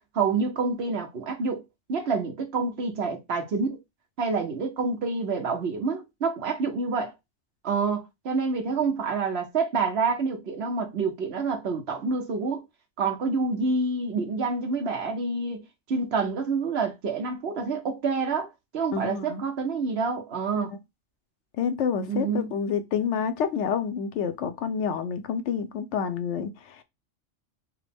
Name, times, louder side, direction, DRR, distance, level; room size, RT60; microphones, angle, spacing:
voice 1, 0.1-1.6 1.9-3.8 4.2-7.1 7.6-12.6 13.0-15.6 15.9-20.7 22.1-22.5, right 4 dB, 60° right, 1.0 m, -27 dB
voice 2, 18.9-19.4 20.6-20.7 21.6-26.8, left 7 dB, 70° left, 0.8 m, -28 dB
4.6 x 2.1 x 3.4 m
omnidirectional pair, 1.3 m